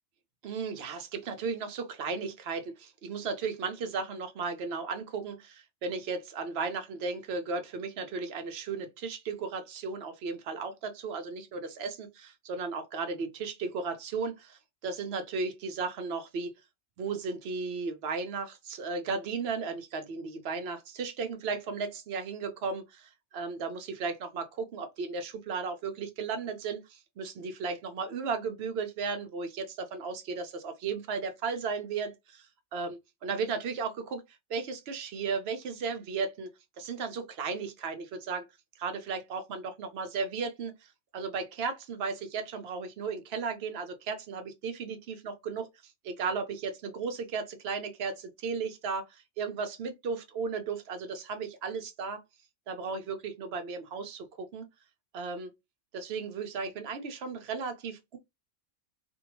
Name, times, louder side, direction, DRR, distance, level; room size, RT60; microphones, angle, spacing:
voice 1, 0.4-16.5 17.0-32.5 32.7-34.2 34.5-36.5 36.8-38.5 38.8-52.2 52.7-54.7 55.1-55.5 55.9-58.2, right 5 dB, 65° right, 0.8 m, -35 dB
2.7 x 2.1 x 2.9 m
omnidirectional pair, 1.2 m